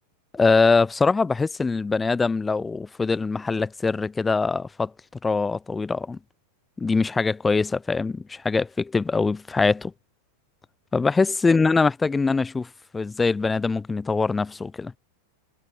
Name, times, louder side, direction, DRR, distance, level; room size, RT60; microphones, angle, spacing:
voice 1, 0.3-4.9 5.2-6.2 6.8-9.9 10.9-14.9, left 4 dB, 10° left, 0.4 m, -23 dB
figure-of-eight pair, 90°, 0 cm